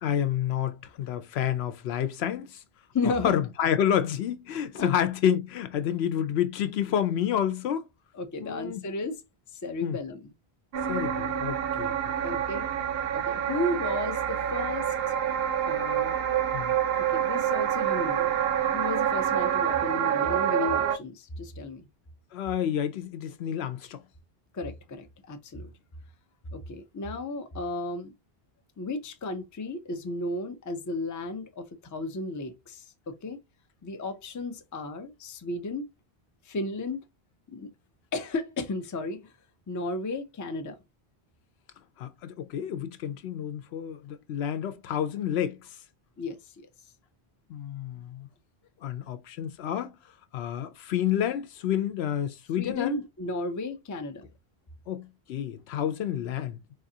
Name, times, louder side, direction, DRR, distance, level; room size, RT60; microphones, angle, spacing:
voice 1, 0.0-2.6 3.2-7.8 8.4-8.8 9.8-10.0 10.9-11.9 16.5-16.7 22.3-24.0 42.0-45.6 47.5-48.3 48.8-49.9 50.3-52.9 54.9-56.8, left 10 dB, 85° left, 0.8 m, -29 dB
voice 2, 2.9-3.3 4.8-4.9 8.1-9.2 9.5-10.3 12.2-12.7 13.1-14.9 15.6-16.2 17.0-18.4 18.7-21.9 24.5-25.7 26.5-28.1 28.8-33.4 33.8-35.9 36.4-37.1 37.5-37.7 38.1-39.3 39.7-40.8 46.2-46.6 52.6-54.3, left 2 dB, 30° left, 0.3 m, -34 dB
sound 1, 10.7-21.0, right 9 dB, 75° right, 0.8 m, -27 dB
4.0 x 2.4 x 2.7 m
omnidirectional pair, 1.0 m